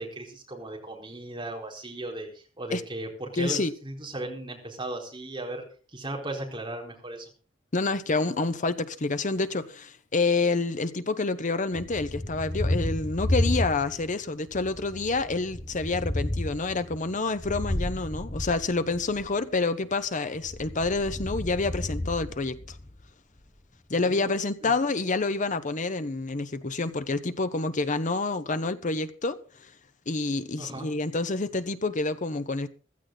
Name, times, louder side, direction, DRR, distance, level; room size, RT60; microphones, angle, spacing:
voice 1, 0.0-5.6 5.9-7.3 24.0-24.3 24.6-24.7 30.6-30.9, right 2 dB, 25° right, 4.2 m, -36 dB
voice 2, 3.4-3.7 7.7-22.8 23.9-29.7 30.1-32.7, left 3 dB, 40° left, 0.9 m, -28 dB
Thunder, 11.7-14.2 14.5-19.3 20.4-23.0, left 1 dB, 20° left, 1.3 m, -32 dB
15.5 x 14.0 x 4.0 m
head